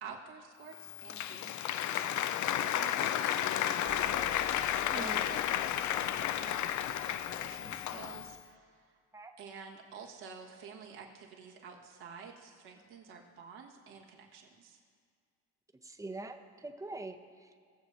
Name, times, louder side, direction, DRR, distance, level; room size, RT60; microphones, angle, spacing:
voice 1, 0.0-4.5 4.9-9.0 9.4-14.8, right 6 dB, 70° right, -1 dB, 1.6 m, -50 dB
Applause, 0.7-8.3, left 11 dB, 45° left, 0.5 m, -33 dB
sound 1, 3.8-8.4, left 3 dB, 20° left, 1.4 m, -51 dB
voice 2, 4.9-5.2 9.1-9.3 15.8-17.5, right 2 dB, 10° right, 6 dB, 0.8 m, -43 dB
18.0 x 7.2 x 2.7 m, 2.1 s
hypercardioid pair, 55°, 40 cm